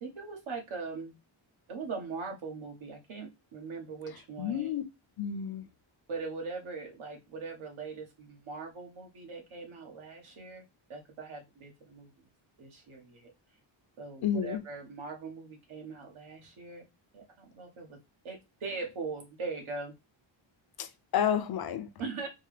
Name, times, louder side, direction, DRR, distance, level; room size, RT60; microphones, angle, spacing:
voice 1, 0.0-1.1 1.7-4.7 6.1-12.3 12.6-13.3 14.0-16.8 17.1-18.0 18.2-19.9 22.0-22.3, right 4 dB, 75° right, 1.3 m, -41 dB
voice 2, 4.4-4.8 5.2-5.7 14.2-14.6 20.8-21.9, left 8 dB, 50° left, 0.6 m, -30 dB
4.4 x 2.1 x 3.2 m
wide cardioid pair, 135°, 49 cm